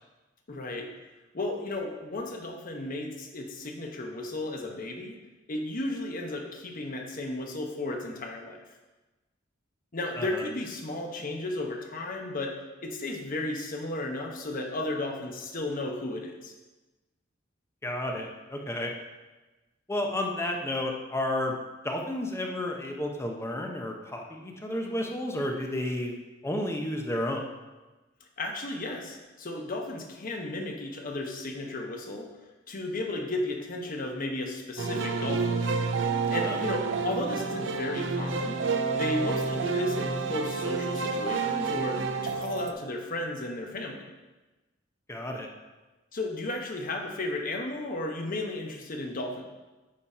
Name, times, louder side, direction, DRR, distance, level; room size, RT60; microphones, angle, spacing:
voice 1, 0.5-0.9 1.3-5.2 5.5-8.6 9.9-12.5 12.8-16.5 28.4-32.3 32.7-35.6 36.3-38.6 38.9-44.0 46.1-49.4, left 2 dB, 45° left, 2 dB, 0.9 m, -34 dB
voice 2, 17.8-18.9 19.9-21.5 21.8-26.2 26.4-27.4 36.4-36.6 45.1-45.5, left 1 dB, 15° left, 2 dB, 0.6 m, -31 dB
sound 1, 34.8-42.7, right 4 dB, 70° right, 0.5 m, -29 dB
8.5 x 2.9 x 5.5 m, 1.2 s
head